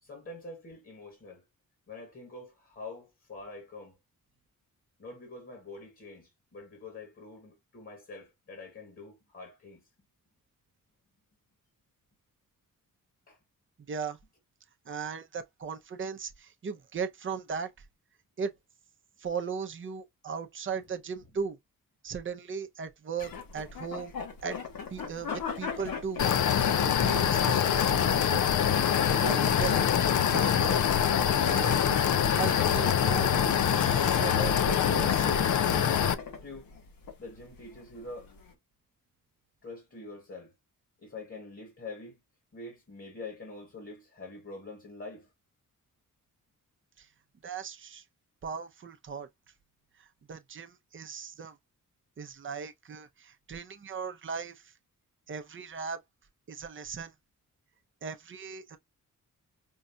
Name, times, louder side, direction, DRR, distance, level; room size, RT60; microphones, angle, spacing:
voice 1, 0.0-1.4 1.9-4.0 5.0-9.8 13.3-13.4 36.4-36.7 37.2-38.3 39.6-40.5 41.0-42.1 42.5-45.3, left 3 dB, 40° left, 1.5 m, -45 dB
voice 2, 13.9-14.2 14.9-17.8 18.4-18.5 19.2-21.6 22.0-24.1 24.4-24.6 24.9-26.2 26.6-28.4 29.2-29.9 30.3-30.8 31.4-32.1 32.4-33.3 33.6-35.4 47.0-47.1 47.4-48.0 48.4-49.3 50.0-51.6 52.2-54.7 55.3-56.0 56.5-57.1 58.0-58.8, right 6 dB, 35° right, 0.6 m, -37 dB
sound 1, 23.2-38.5, left 6 dB, 80° left, 1.4 m, -41 dB
sound 2, 26.2-36.1, left 8 dB, 60° left, 0.5 m, -24 dB
5.3 x 2.3 x 2.6 m
wide cardioid pair, 175°, 33 cm